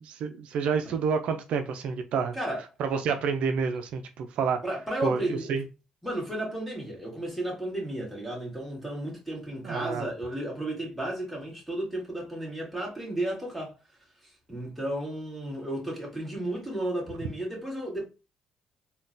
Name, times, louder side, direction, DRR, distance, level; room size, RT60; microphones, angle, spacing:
voice 1, 0.2-2.4 2.8-4.6 5.0-5.6 9.6-10.0, right 5 dB, 70° right, 0.4 m, -28 dB
voice 2, 4.6-5.5 6.0-13.8 14.2-18.0, right 1 dB, ahead, 1.7 m, -33 dB
3.7 x 2.2 x 2.5 m
cardioid pair, 90°, 2 cm